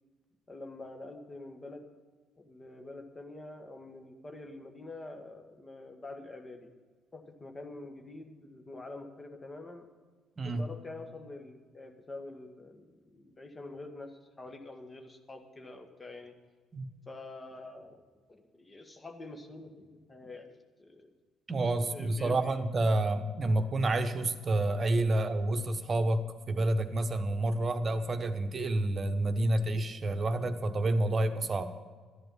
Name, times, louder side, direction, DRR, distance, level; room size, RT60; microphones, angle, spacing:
voice 1, 0.5-1.9 2.4-6.7 7.1-9.9 10.4-16.3 17.1-21.1 21.9-22.6, left 2 dB, 25° left, 5 dB, 1.7 m, -46 dB
voice 2, 21.5-31.7, right 2 dB, 35° right, 9 dB, 1.1 m, -29 dB
12.0 x 11.0 x 5.6 m, 1.5 s
figure-of-eight pair, 45°, 0 cm